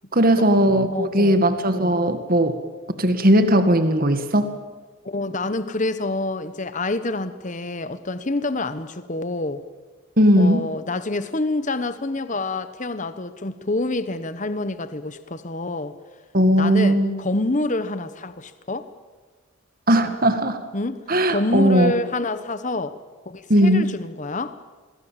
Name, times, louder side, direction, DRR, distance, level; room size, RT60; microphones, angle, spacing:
voice 1, 0.1-2.6 3.0-4.5 10.2-10.7 16.3-17.1 19.9-20.6 21.1-21.9 23.5-23.9, equal, 40° right, 1.9 m, -18 dB
voice 2, 0.9-1.4 5.0-9.6 10.4-15.9 16.6-18.9 20.0-20.2 20.7-21.0 21.3-23.0 23.2-24.6, left 2 dB, 35° left, 1.1 m, -27 dB
26.0 x 21.0 x 7.6 m
head